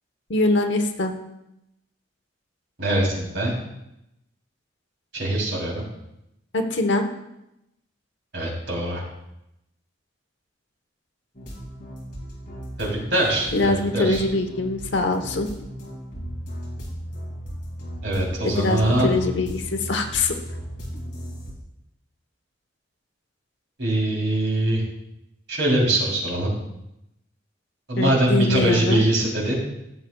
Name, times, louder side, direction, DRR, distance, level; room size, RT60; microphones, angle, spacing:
voice 1, 0.3-1.1 6.5-7.0 13.5-15.5 18.4-20.3 28.0-29.0, left 2 dB, 70° left, 5 dB, 1.0 m, -23 dB
voice 2, 2.8-3.5 5.1-5.8 8.3-9.0 12.8-14.2 18.0-19.1 23.8-24.8 25.5-26.5 27.9-29.6, right 1 dB, 65° right, -3 dB, 3.2 m, -22 dB
sound 1, 11.3-21.5, equal, 45° left, 2.5 m, -36 dB
14.5 x 7.5 x 2.3 m, 0.86 s
head